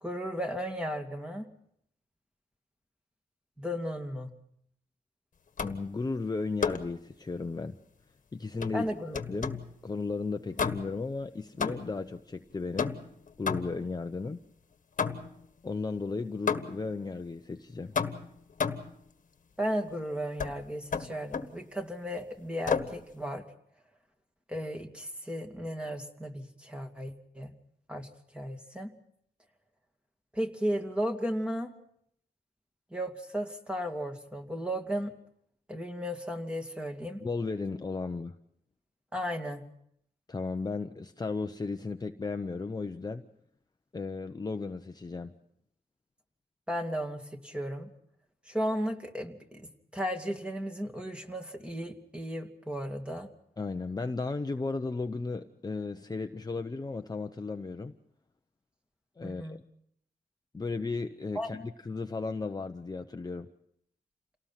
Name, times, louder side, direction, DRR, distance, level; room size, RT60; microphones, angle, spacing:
voice 1, 0.0-1.5 3.6-4.3 8.7-9.2 19.6-23.4 24.5-27.5 27.9-28.1 28.3-28.9 30.3-31.7 32.9-35.1 35.7-37.2 39.1-39.6 46.7-47.9 48.5-53.3 59.2-59.6 61.3-61.6, equal, 5° right, 2.4 m, -35 dB
sound 1, 5.6-5.9 6.6-7.0 8.6-9.7 10.6-11.1 11.6-12.1 12.8-13.9 15.0-15.5 16.5-16.9 18.0-19.0 20.4-20.6 20.9-21.6 22.7-23.0, left 6 dB, 50° left, 1.5 m, -32 dB
voice 2, 5.6-7.7 8.3-8.9 9.3-13.0 13.4-14.4 15.6-18.0 37.2-38.4 40.3-43.2 43.9-45.3 53.6-57.9 59.2-59.6 60.5-63.5, left 3 dB, 25° left, 0.9 m, -35 dB
28.5 x 18.5 x 5.8 m
wide cardioid pair, 105°, 16 cm